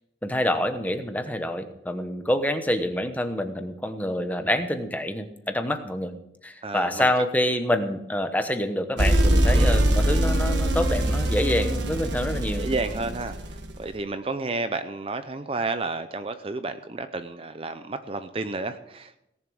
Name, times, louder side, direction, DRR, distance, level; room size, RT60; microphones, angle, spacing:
voice 1, 0.2-6.1 6.4-12.7, left 1 dB, 10° left, 7 dB, 0.9 m, -27 dB
voice 2, 6.6-7.1 9.5-9.8 12.5-19.2, right 3 dB, 30° right, 10 dB, 0.6 m, -31 dB
sound 1, 9.0-13.8, right 1 dB, 75° right, 1.4 m, -23 dB
18.0 x 7.3 x 6.3 m, 0.83 s
head